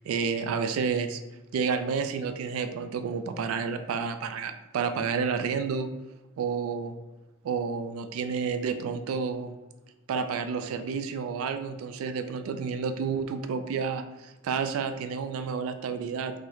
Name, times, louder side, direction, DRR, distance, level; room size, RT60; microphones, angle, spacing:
voice 1, 0.1-1.2 1.5-5.9 6.4-7.0 7.4-9.6 10.1-16.3, right 5 dB, 80° right, 9 dB, 0.3 m, -30 dB
3.5 x 2.1 x 3.0 m, 1.0 s
head